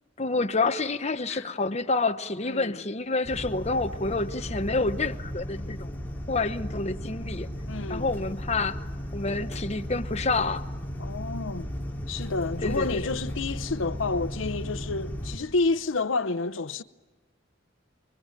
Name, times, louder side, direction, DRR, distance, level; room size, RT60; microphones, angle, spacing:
voice 1, 0.2-5.9 6.3-7.5 7.9-8.8 9.1-10.7 12.6-13.0, left 3 dB, 35° left, 1.0 m, -28 dB
voice 2, 2.4-2.8 7.7-8.1 11.0-11.7 12.1-16.8, left 3 dB, 90° left, 0.8 m, -29 dB
sound 1, 3.2-15.4, equal, 10° left, 3.1 m, -35 dB
25.5 x 24.5 x 9.1 m
head